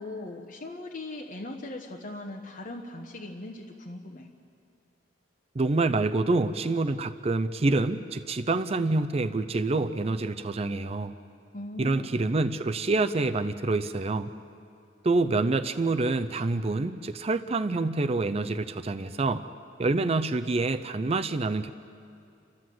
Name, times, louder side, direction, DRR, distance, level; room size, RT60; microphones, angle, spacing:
voice 1, 0.0-4.3 11.5-12.1 16.3-16.7, left 2 dB, 50° left, -1 dB, 1.1 m, -39 dB
voice 2, 5.5-11.1 11.8-14.3 15.0-19.4 19.8-21.7, right 3 dB, 35° right, 9 dB, 0.5 m, -27 dB
29.5 x 13.0 x 7.7 m, 2.5 s
head